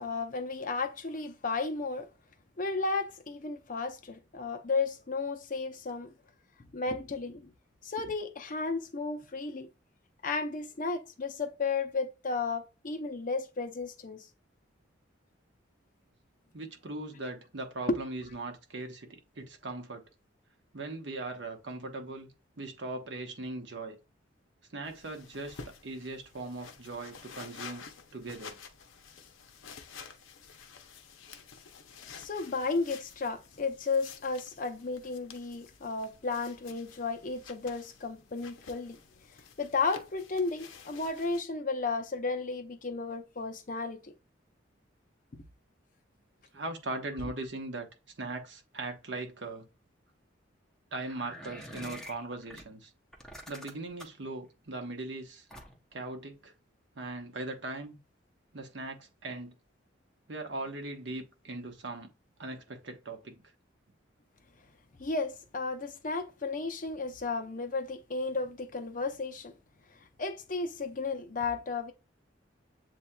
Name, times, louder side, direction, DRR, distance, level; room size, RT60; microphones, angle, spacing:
voice 1, 0.0-2.1 2.6-6.1 6.7-7.5 7.8-9.7 10.2-14.3 17.9-18.0 32.2-39.0 39.6-44.1 65.0-69.5 69.9-71.9, left 4 dB, 45° left, 0.6 m, -33 dB
voice 2, 16.5-20.0 20.7-22.3 22.6-24.0 24.7-27.8 28.1-28.6 46.5-47.9 48.2-49.7 50.9-52.9 53.5-55.5 55.9-56.5 56.9-58.0 58.5-59.5 60.3-62.1 62.4-63.4, right 2 dB, 65° right, 1.0 m, -39 dB
sound 1, 24.8-41.4, left 5 dB, 85° left, 0.6 m, -51 dB
sound 2, 51.0-52.6 53.1-54.2 55.5-55.9, equal, 5° left, 0.7 m, -46 dB
7.6 x 2.8 x 2.2 m
head